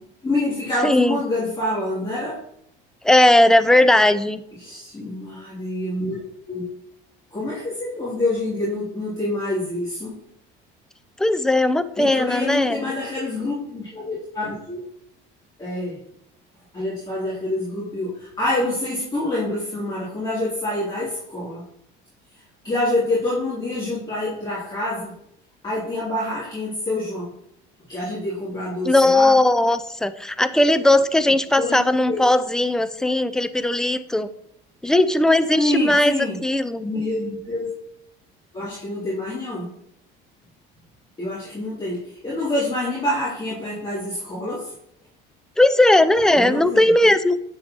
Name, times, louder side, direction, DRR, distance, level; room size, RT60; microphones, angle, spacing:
voice 1, 0.2-2.4 4.6-6.2 6.5-6.6 7.3-10.1 12.0-14.8 15.6-16.0 16.7-21.6 22.6-25.1 25.6-27.3 27.9-29.3 31.2-32.2 35.5-36.4 36.8-37.7 38.5-39.7 41.2-44.7 46.3-46.8, left 1 dB, 20° left, -9 dB, 2.7 m, -26 dB
voice 2, 0.8-1.2 3.0-4.4 11.2-12.9 28.8-34.3 34.8-36.2 36.4-36.9 45.6-47.4, left 1 dB, 5° left, 12 dB, 0.4 m, -18 dB
8.6 x 6.8 x 2.9 m, 0.73 s
cardioid pair, 105°, 21 cm